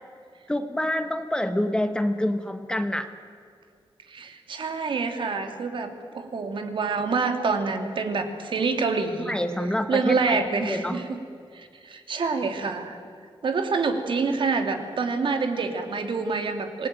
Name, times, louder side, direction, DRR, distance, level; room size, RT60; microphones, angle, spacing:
voice 1, 0.5-3.1 9.3-11.0, left 1 dB, 10° left, 9 dB, 1.2 m, -27 dB
voice 2, 4.1-9.3 9.9-11.2 11.5-13.0 13.4-16.9, right 4 dB, 60° right, 6 dB, 2.7 m, -27 dB
26.5 x 19.0 x 9.2 m, 2.2 s
wide cardioid pair, 150°, 9 cm